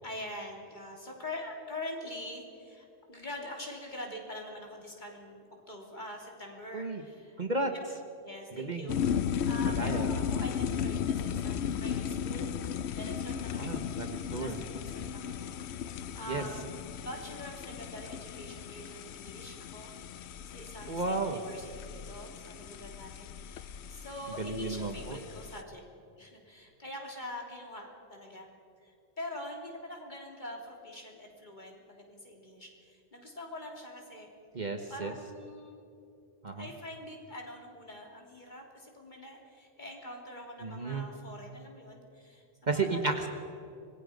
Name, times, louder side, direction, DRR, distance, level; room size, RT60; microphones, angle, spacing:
voice 1, 0.0-7.5 8.2-9.0 9.5-12.6 12.9-13.9 14.4-19.9 20.2-25.8 26.2-28.5 28.8-34.3 34.5-35.8 36.6-42.5 42.7-43.2, left 1 dB, 45° left, 0 dB, 3.5 m, -44 dB
voice 2, 7.4-7.7 8.6-8.9 9.8-10.2 13.6-14.6 16.3-16.4 20.9-21.4 24.4-25.2 34.5-35.1 36.4-36.7 40.6-41.0 42.7-43.3, right 3 dB, 40° right, 5 dB, 1.3 m, -33 dB
sound 1, 8.9-25.6, left 8 dB, 75° left, 0.9 m, -36 dB
25.5 x 20.5 x 5.2 m, 2.7 s
omnidirectional pair, 1.1 m